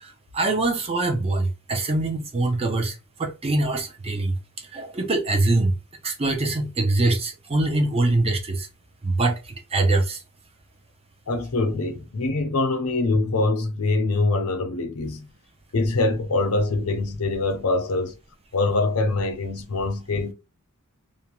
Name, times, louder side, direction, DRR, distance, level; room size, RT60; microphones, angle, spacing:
voice 1, 0.0-4.4 4.7-5.7 6.0-8.7 9.0-10.2, right 2 dB, 25° right, 0.5 m, -23 dB
voice 2, 11.3-15.3 15.7-18.1 18.5-20.3, left 2 dB, 75° left, 0.6 m, -24 dB
2.5 x 2.2 x 2.9 m
head